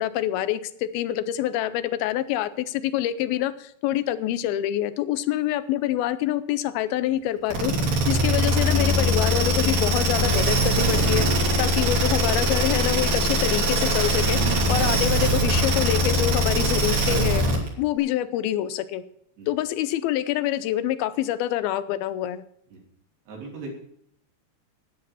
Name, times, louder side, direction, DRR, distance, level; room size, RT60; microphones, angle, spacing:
voice 1, 0.0-11.3 11.6-14.4 14.7-17.4 17.8-19.0 19.5-22.4, left 13 dB, 80° left, 14 dB, 2.3 m, -26 dB
sound 1, 7.5-17.7, right 1 dB, 60° right, 4.5 m, -22 dB
sound 2, 10.1-13.0 13.4-13.5, equal, 50° left, 2.6 m, -37 dB
voice 2, 23.3-23.7, right 2 dB, 80° right, -1 dB, 5.2 m, -38 dB
10.5 x 9.6 x 7.2 m, 0.71 s
omnidirectional pair, 4.7 m